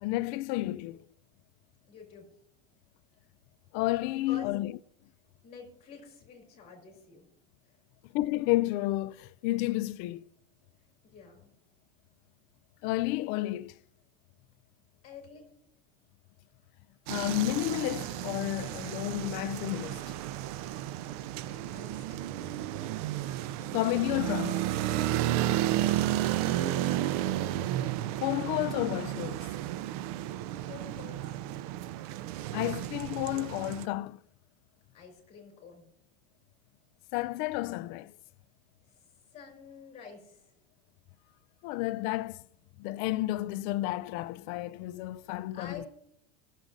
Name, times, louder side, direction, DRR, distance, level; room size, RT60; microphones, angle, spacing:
voice 1, 0.0-1.0 3.7-4.7 8.1-10.2 12.8-13.8 17.1-20.0 23.6-24.7 28.2-29.5 32.5-34.2 37.1-38.1 41.6-42.4 42.8-45.9, left 17 dB, 50° left, 0.4 m, -31 dB
voice 2, 1.9-2.2 4.1-4.5 5.4-7.3 7.7-7.8 11.0-11.5 15.0-15.5 21.4-22.3 25.7-26.8 30.6-31.4 34.9-35.9 38.9-39.0 39.3-40.4 45.2-45.9, left 5 dB, 30° left, 4.1 m, -49 dB
sound 1, 17.1-33.8, right 13 dB, 65° right, 0.5 m, -32 dB
20.0 x 7.3 x 2.6 m
supercardioid pair, 130°, 21 cm